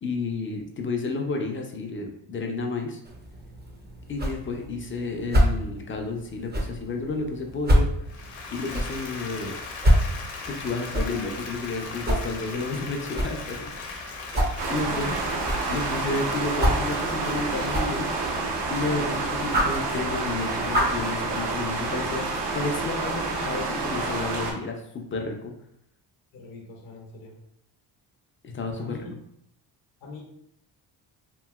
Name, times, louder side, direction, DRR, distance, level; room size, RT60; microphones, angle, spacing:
voice 1, 0.0-3.0 4.1-7.9 8.5-9.6 10.5-14.0 14.6-15.2 15.7-18.1 18.7-22.3 22.5-25.5 28.4-29.0, left 3 dB, 25° left, 3 dB, 0.5 m, -31 dB
sound 1, 3.1-21.1, equal, 20° right, 0.6 m, -28 dB
Applause, 8.1-19.4, left 4 dB, 85° left, 0.8 m, -39 dB
sound 2, 14.6-24.5, right 3 dB, 60° right, 0.7 m, -29 dB
voice 2, 26.3-27.4 28.8-29.1 30.0-30.2, left 3 dB, 50° left, -1 dB, 0.8 m, -42 dB
2.9 x 2.7 x 2.3 m, 0.75 s
cardioid pair, 80°, 47 cm